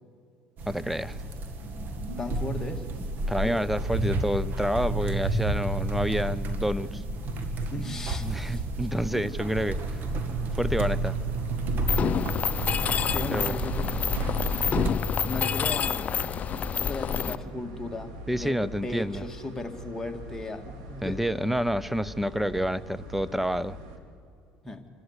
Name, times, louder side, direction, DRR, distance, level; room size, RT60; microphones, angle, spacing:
sound 1, 0.6-14.9, right 2 dB, 55° right, 1.9 m, -31 dB
voice 1, 0.7-1.2 3.3-7.0 8.2-10.0 10.5-11.1 13.3-13.6 18.3-19.2 21.0-23.8, equal, 5° right, 18 dB, 0.6 m, -28 dB
voice 2, 2.2-2.8 3.4-3.6 7.7-8.7 13.1-13.9 15.2-16.0 16.8-18.6 18.8-21.2 24.6-24.8, left 2 dB, 10° left, 3 dB, 2.0 m, -36 dB
sound 2, 9.2-24.0, right 1 dB, 85° right, 2.4 m, -43 dB
Mechanisms, 11.9-17.3, left 7 dB, 40° left, 0.6 m, -28 dB
27.0 x 13.0 x 8.1 m, 2.4 s
supercardioid pair, 85°, 4 cm